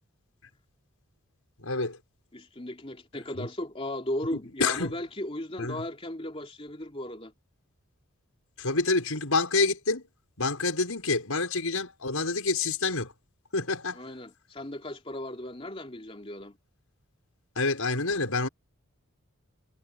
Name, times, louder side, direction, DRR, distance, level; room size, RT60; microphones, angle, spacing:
voice 1, 1.6-2.0 3.4-3.5 4.3-4.9 5.6-5.8 8.6-10.0 10.4-13.1 13.5-14.0 17.6-18.5, left 3 dB, 75° left, 5.9 m, -27 dB
voice 2, 2.3-7.3 13.9-16.6, left 1 dB, 25° left, 3.0 m, -36 dB
head